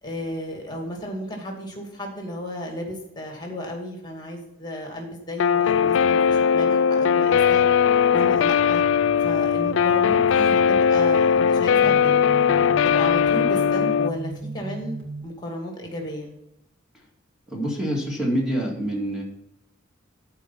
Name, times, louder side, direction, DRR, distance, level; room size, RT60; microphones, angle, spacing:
voice 1, 0.0-7.6 8.1-8.8 9.2-12.2 12.8-14.9 15.2-16.3, equal, 25° left, 1 dB, 2.3 m, -33 dB
Guitar, 5.4-14.1, left 7 dB, 85° left, 0.4 m, -19 dB
sound 1, 8.4-15.2, right 3 dB, 70° right, 2.8 m, -38 dB
voice 2, 17.5-19.2, right 1 dB, 5° right, -3 dB, 2.1 m, -26 dB
13.5 x 4.6 x 5.8 m, 0.84 s
head